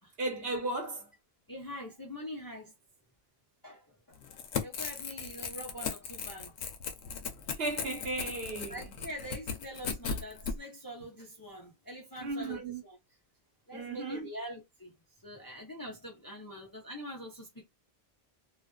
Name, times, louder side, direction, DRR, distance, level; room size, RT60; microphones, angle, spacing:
voice 1, 0.2-1.1 7.6-8.9 12.2-12.8 13.7-14.3, right 2 dB, 65° right, 1.1 m, -35 dB
voice 2, 1.5-2.7 3.6-4.2 4.6-6.5 8.6-13.0 13.7-14.9 15.2-17.6, equal, 25° left, 0.5 m, -44 dB
Crackle / Tearing, 4.2-10.5, left 6 dB, 80° left, 0.9 m, -37 dB
2.4 x 2.4 x 2.2 m
omnidirectional pair, 1.1 m